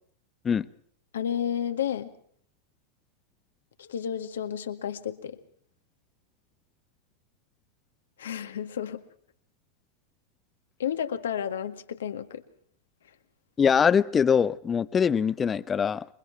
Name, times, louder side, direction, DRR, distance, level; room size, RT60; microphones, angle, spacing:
voice 1, 1.1-2.1 3.8-5.4 8.2-9.0 10.8-12.4, left 9 dB, 65° left, 9 dB, 1.9 m, -31 dB
voice 2, 13.6-16.1, left 7 dB, 20° left, 19 dB, 0.8 m, -23 dB
27.5 x 23.5 x 4.6 m, 0.62 s
figure-of-eight pair, 90°, 0 cm